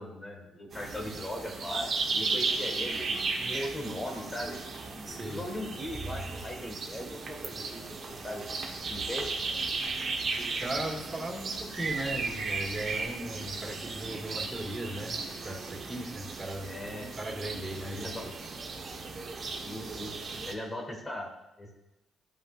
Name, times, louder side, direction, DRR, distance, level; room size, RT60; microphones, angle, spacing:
voice 1, 0.0-4.6 5.2-8.4 8.9-9.3 16.6-17.1 17.9-18.3 18.9-19.0 19.6-20.1 20.4-21.3 21.6-21.7, left 1 dB, 20° left, 0 dB, 1.6 m, -39 dB
sound 1, 0.7-20.5, right 4 dB, 50° right, 1.2 m, -35 dB
voice 2, 5.1-5.4 10.4-15.2 15.4-16.7 17.2-18.1, right 1 dB, 25° right, -2 dB, 2.0 m, -37 dB
13.0 x 5.6 x 2.5 m, 0.97 s
cardioid pair, 90°, 0 cm